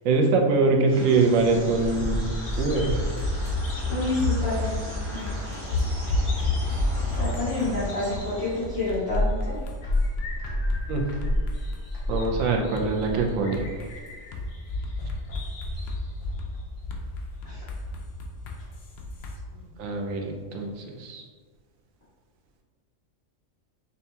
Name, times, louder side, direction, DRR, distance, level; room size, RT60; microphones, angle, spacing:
voice 1, 0.0-2.3 2.6-3.0 10.9-11.0 12.1-13.6 19.8-21.2, right 3 dB, 85° right, 2 dB, 1.0 m, -23 dB
sound 1, 0.9-9.0, equal, 25° right, 1.0 m, -38 dB
Bird vocalization bird call bird song, 1.4-19.5, left 2 dB, 85° left, 1.2 m, -30 dB
sound 2, 2.9-3.6 4.0-4.1 4.5-6.2 6.5-7.7 8.1-8.2 8.6-11.9 12.2-12.4 12.8-14.4 14.8-16.0 16.4-16.5 16.9-19.4, left 2 dB, 65° left, 0.7 m, -39 dB
voice 2, 3.9-5.3 7.1-9.6 17.4-17.6, left 2 dB, 20° left, -13 dB, 1.1 m, -29 dB
5.3 x 2.3 x 2.7 m, 1.5 s
omnidirectional pair, 1.4 m